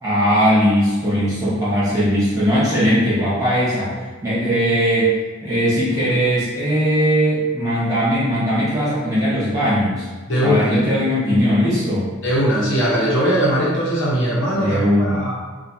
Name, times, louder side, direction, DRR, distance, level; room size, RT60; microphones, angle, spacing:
voice 1, 0.0-3.9 4.2-5.1 5.4-10.1 10.4-12.1 14.5-15.2, equal, 15° right, -10 dB, 1.5 m, -19 dB
voice 2, 10.3-10.7 12.2-15.5, equal, 60° left, -6 dB, 1.0 m, -19 dB
4.3 x 2.4 x 2.9 m, 1.4 s
head